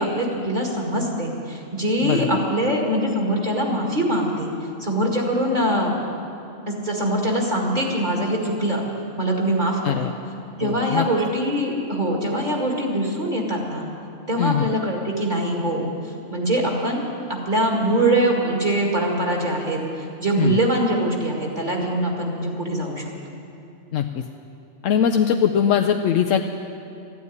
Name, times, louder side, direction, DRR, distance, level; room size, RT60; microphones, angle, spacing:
voice 1, 0.0-4.5 4.8-6.0 6.7-8.8 9.2-10.1 10.6-13.9 14.3-15.9 16.3-17.0 17.3-23.0, right 1 dB, 35° right, 0 dB, 2.2 m, -23 dB
voice 2, 2.0-2.4 9.8-10.1 10.6-11.1 14.4-14.7 20.4-20.6 23.9-24.2 24.8-26.4, left 8 dB, 80° left, 4 dB, 1.0 m, -21 dB
13.5 x 9.5 x 9.6 m, 2.6 s
omnidirectional pair, 1.3 m